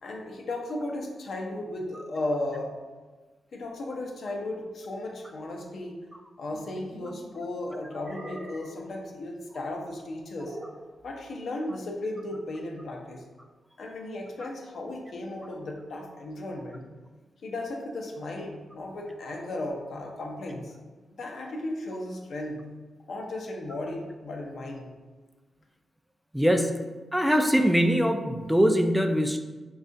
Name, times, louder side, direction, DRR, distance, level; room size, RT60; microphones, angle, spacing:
voice 1, 0.0-2.8 3.5-6.0 6.4-10.6 11.0-13.2 13.8-16.9 17.4-20.7 21.2-22.6 23.1-24.9, left 1 dB, 70° left, 1 dB, 0.5 m, -35 dB
sound 1, 6.5-7.3 8.0-8.9 10.4-10.9, right 2 dB, 55° right, 0.5 m, -44 dB
voice 2, 26.3-26.8 27.1-29.4, equal, 5° right, 5 dB, 0.3 m, -22 dB
4.2 x 2.3 x 2.6 m, 1.3 s
supercardioid pair, 45°, 0 cm